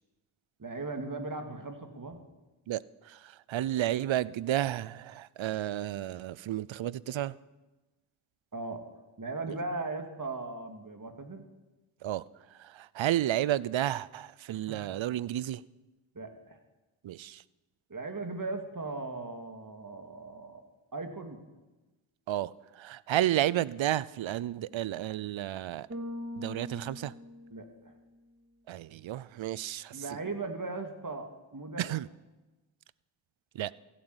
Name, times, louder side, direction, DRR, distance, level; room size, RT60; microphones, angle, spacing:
voice 1, 0.6-2.2 8.5-8.8 9.2-11.4 14.5-14.8 16.1-16.6 17.9-20.6 20.9-21.4 27.5-27.9 29.9-31.9, right 3 dB, 40° right, 2.4 m, -38 dB
voice 2, 3.5-7.3 9.5-9.6 12.0-12.2 13.0-15.6 17.0-17.4 22.3-22.5 22.8-25.9 26.4-27.1 28.7-29.9 31.8-32.1 33.6-33.7, right 13 dB, 65° right, 0.6 m, -31 dB
Bass guitar, 25.9-28.2, left 1 dB, 25° right, 2.7 m, -42 dB
15.0 x 9.6 x 8.0 m
supercardioid pair, 40°, 50 cm